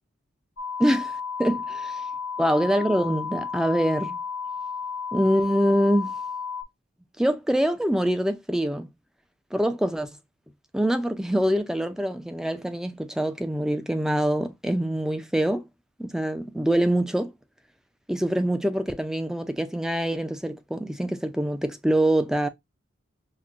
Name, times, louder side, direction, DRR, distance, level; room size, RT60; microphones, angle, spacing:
sound 1, 0.6-6.6, left 6 dB, 70° left, 0.7 m, -33 dB
voice 1, 0.8-1.1 1.4-2.0 2.4-4.2 5.1-6.1 7.2-8.9 9.5-10.1 10.7-15.7 16.0-17.3 18.1-22.5, equal, 5° right, 0.4 m, -24 dB
5.8 x 2.1 x 2.4 m
head